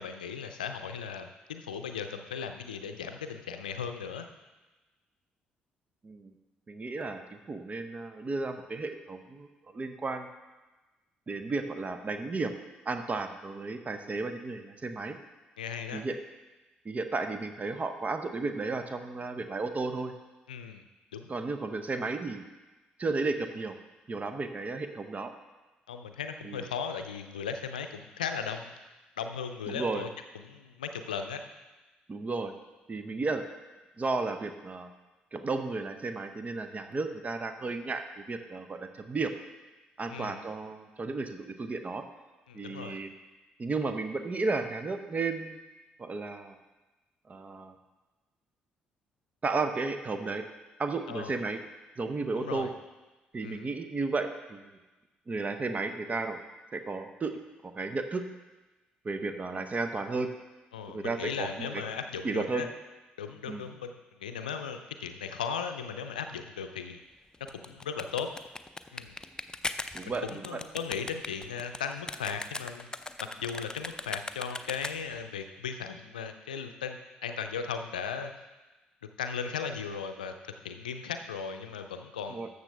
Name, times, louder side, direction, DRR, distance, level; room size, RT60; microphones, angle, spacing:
voice 1, 0.0-4.3 15.6-16.0 20.5-20.8 21.1-21.3 25.9-28.7 29.2-30.1 30.3-31.4 40.1-40.4 42.5-43.0 51.1-51.3 52.4-52.7 53.4-53.7 60.7-62.7 63.2-67.0 67.5-68.3 68.9-69.2 70.1-72.9 73.2-78.3 79.2-82.5, left 6 dB, 85° left, 7 dB, 0.5 m, -37 dB
voice 2, 6.7-10.3 11.3-12.5 12.9-15.2 15.9-16.1 16.8-20.1 21.3-22.4 23.0-23.8 24.1-25.3 26.4-26.6 29.7-30.0 32.1-32.5 32.9-33.5 34.0-34.9 35.3-39.3 40.0-42.0 42.5-43.1 43.6-45.6 46.0-46.6 47.3-47.7 49.4-50.4 50.8-51.6 52.0-52.7 53.3-54.8 55.3-56.4 56.7-58.2 59.0-60.3 60.9-61.8 62.2-62.7 63.5-63.7 69.9-70.5 82.3-82.5, right 3 dB, 35° right, 8 dB, 0.8 m, -33 dB
sound 1, 67.3-75.2, left 2 dB, 15° left, 0.5 m, -39 dB
13.0 x 6.7 x 3.4 m, 1.2 s
figure-of-eight pair, 45°, 4 cm